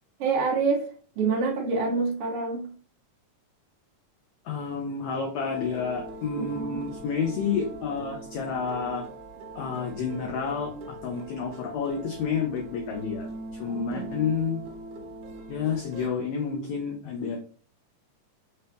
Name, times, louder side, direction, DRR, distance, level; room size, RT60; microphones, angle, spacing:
voice 1, 0.2-0.9 1.1-2.7 6.3-6.8 13.7-14.1, right 4 dB, 60° right, 1.6 m, -27 dB
voice 2, 4.5-9.1 9.6-13.3 13.6-14.6 15.5-17.4, left 6 dB, 75° left, 1.7 m, -30 dB
sound 1, 5.5-16.1, right 2 dB, 75° right, 2.2 m, -41 dB
5.6 x 2.7 x 3.4 m
omnidirectional pair, 3.8 m